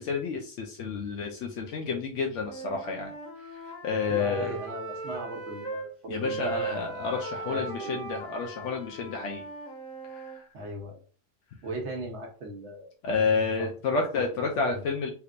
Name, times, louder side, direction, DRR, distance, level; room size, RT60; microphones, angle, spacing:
voice 1, 0.0-3.1 3.8-4.5 6.1-9.4 10.1-10.4 13.0-15.1, left 4 dB, 90° left, 1 dB, 0.9 m, -30 dB
Wind instrument woodwind instrument, 2.4-5.9 6.2-10.4, right 3 dB, 15° left, 0.9 m, -38 dB
voice 2, 4.1-6.7 7.5-8.0 10.5-11.0 11.6-12.9 13.6-14.0 14.3-14.8, right 1 dB, 75° right, 1 dB, 1.0 m, -38 dB
3.4 x 2.8 x 2.4 m, 0.40 s
omnidirectional pair, 1.2 m